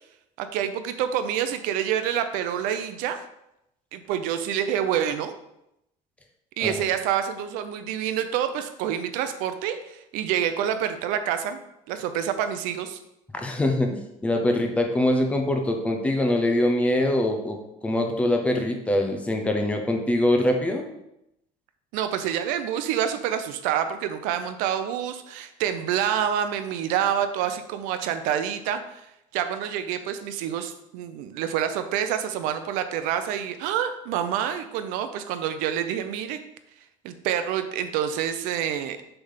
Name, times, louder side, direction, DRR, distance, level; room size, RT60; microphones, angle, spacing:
voice 1, 0.4-3.2 3.9-5.3 6.6-11.6 11.9-13.0 21.9-29.1 29.3-36.4 37.0-39.0, right 9 dB, 75° right, 9 dB, 0.7 m, -27 dB
voice 2, 13.3-20.9, left 1 dB, 10° left, 3 dB, 0.6 m, -23 dB
6.9 x 3.4 x 5.7 m, 0.83 s
cardioid pair, 175°, 14 cm